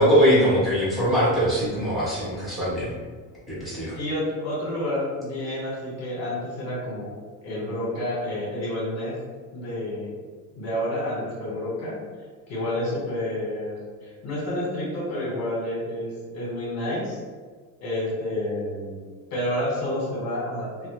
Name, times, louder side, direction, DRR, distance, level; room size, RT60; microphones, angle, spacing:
voice 1, 0.0-2.9 3.5-4.0, equal, ahead, -10 dB, 0.8 m, -21 dB
voice 2, 3.9-7.1 7.4-9.2 9.5-10.1 10.5-12.0 12.5-17.2 17.8-19.0 19.3-20.9, left 1 dB, 40° left, -4 dB, 1.0 m, -29 dB
2.1 x 2.0 x 2.9 m, 1.5 s
cardioid pair, 140°, 39 cm